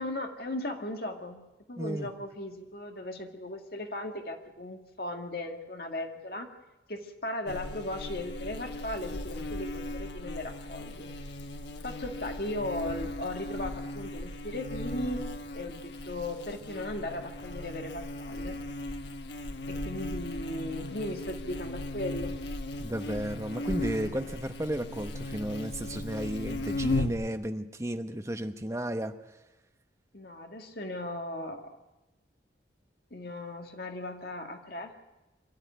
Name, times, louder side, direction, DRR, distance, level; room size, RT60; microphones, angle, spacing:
voice 1, 0.0-6.5 6.9-11.1 11.8-15.3 15.5-18.6 19.7-22.4 30.1-31.7 33.1-34.9, left 1 dB, 55° left, 4 dB, 2.0 m, -37 dB
voice 2, 1.8-2.1 22.8-29.1, right 1 dB, 15° right, 7 dB, 1.0 m, -33 dB
Buzz, 7.5-27.3, left 1 dB, 70° left, 1.2 m, -37 dB
25.0 x 12.5 x 9.3 m, 1.0 s
head